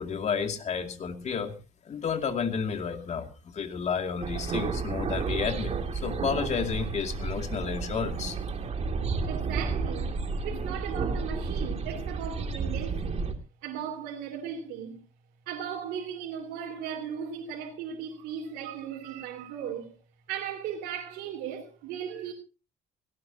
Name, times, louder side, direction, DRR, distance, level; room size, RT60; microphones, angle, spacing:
voice 1, 0.0-1.6 1.8-8.4, left 6 dB, 45° left, 2.5 m, -31 dB
sound 1, 4.2-13.3, right 4 dB, 40° right, 2.6 m, -32 dB
voice 2, 8.9-13.3 13.6-15.0 15.5-20.0 20.3-22.3, right 8 dB, 90° right, 3.5 m, -37 dB
18.5 x 17.5 x 2.9 m
cardioid pair, 110°, 17 cm